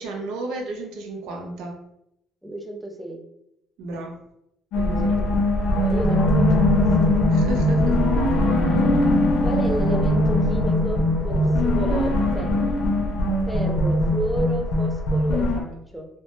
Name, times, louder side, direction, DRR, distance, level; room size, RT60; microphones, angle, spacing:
voice 1, 0.0-1.8 3.8-4.2 4.8-5.2 7.3-8.0, right 2 dB, 85° right, 2 dB, 0.5 m, -33 dB
voice 2, 2.4-3.2 5.0-5.3 5.6-7.2 9.4-12.6 13.5-16.1, right 1 dB, 5° right, 2 dB, 0.3 m, -32 dB
sound 1, 4.7-15.6, left 1 dB, 70° left, 0.5 m, -20 dB
2.1 x 2.0 x 2.9 m, 0.79 s
cardioid pair, 125°, 0 cm